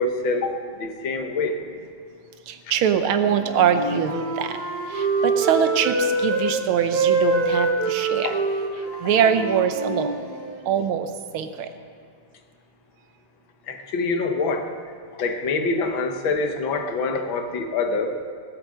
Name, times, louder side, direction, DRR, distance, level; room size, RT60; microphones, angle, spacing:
voice 1, 0.0-1.6 8.2-8.4 13.7-14.7 15.2-18.2, left 3 dB, 70° left, 5 dB, 1.8 m, -25 dB
voice 2, 2.5-4.6 4.9-8.4 9.0-10.2 10.7-11.7, right 8 dB, 85° right, 8 dB, 1.7 m, -23 dB
Wind instrument woodwind instrument, 3.2-6.5 6.8-10.6, right 3 dB, 50° right, 3.6 m, -25 dB
17.5 x 7.8 x 7.5 m, 2.1 s
omnidirectional pair, 2.3 m